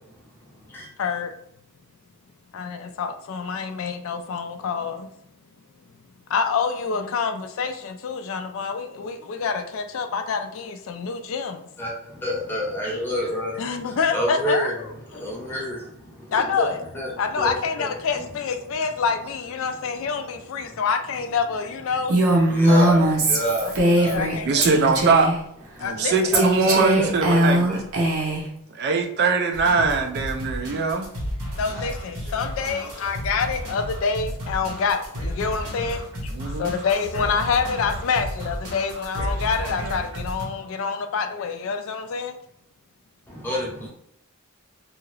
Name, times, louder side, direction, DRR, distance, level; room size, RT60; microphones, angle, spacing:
voice 1, 1.0-1.3 2.5-5.1 6.3-11.6 13.6-15.4 16.3-16.8 17.2-22.2 23.6-24.9 25.8-26.3 31.6-36.3 36.6-42.4, left 5 dB, 60° left, 7 dB, 0.3 m, -27 dB
voice 2, 11.8-14.7 15.1-17.9 20.6-20.8 22.4-24.5 25.8-25.9 26.3-27.8 43.3-43.9, left 1 dB, 10° left, -4 dB, 0.7 m, -29 dB
Female speech woman speaking, 22.1-24.4 24.6-25.4 26.3-28.5, right 1 dB, 75° right, 0.8 m, -20 dB
voice 3, 24.4-25.3 25.8-27.7 28.7-31.1 36.3-36.7, right 4 dB, 45° right, 5 dB, 0.3 m, -22 dB
sound 1, 29.5-40.4, equal, 90° right, 1.2 m, -32 dB
2.8 x 2.4 x 3.1 m, 0.73 s
head